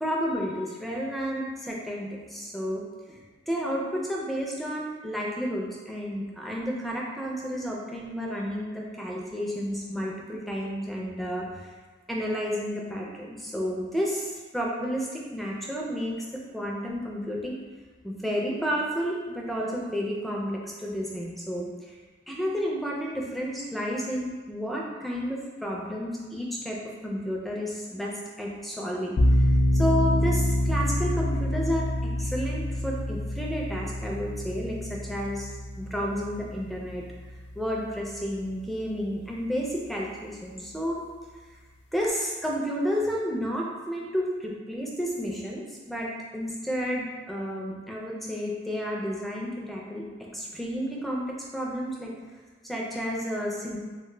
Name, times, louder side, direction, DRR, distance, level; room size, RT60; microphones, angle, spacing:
voice 1, 0.0-3.2 3.5-11.7 12.1-17.6 18.0-21.9 22.3-29.2 29.7-37.0 37.6-41.0 41.9-52.1 52.6-53.8, equal, ahead, -2 dB, 0.4 m, -31 dB
sound 1, 29.2-38.0, left 1 dB, 70° left, 0.4 m, -27 dB
3.2 x 2.1 x 3.2 m, 1.4 s
head